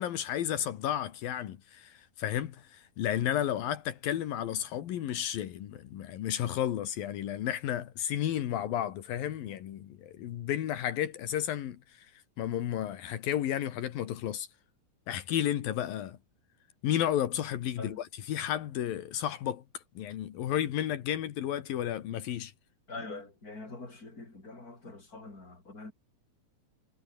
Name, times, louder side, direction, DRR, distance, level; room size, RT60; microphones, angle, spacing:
voice 1, 0.0-12.1 12.4-14.5 15.1-16.2 16.8-19.6 20.0-22.5, left 11 dB, 80° left, 3.4 m, -32 dB
voice 2, 22.9-25.9, left 3 dB, 25° left, 6.3 m, -44 dB
omnidirectional pair, 4.0 m